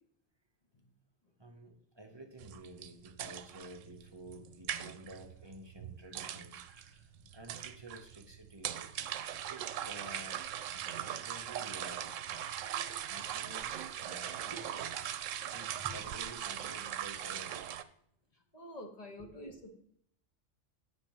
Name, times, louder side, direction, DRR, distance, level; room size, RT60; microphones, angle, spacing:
voice 1, 1.4-8.9 9.5-10.4 10.7-14.8 15.5-17.7 19.2-19.3, right 1 dB, 20° right, 4 dB, 1.0 m, -51 dB
sound 1, 2.4-17.8, right 10 dB, 80° right, 0.9 m, -40 dB
voice 2, 18.3-19.7, left 1 dB, 35° left, 3 dB, 1.3 m, -48 dB
9.1 x 4.5 x 7.3 m, 0.68 s
omnidirectional pair, 1.3 m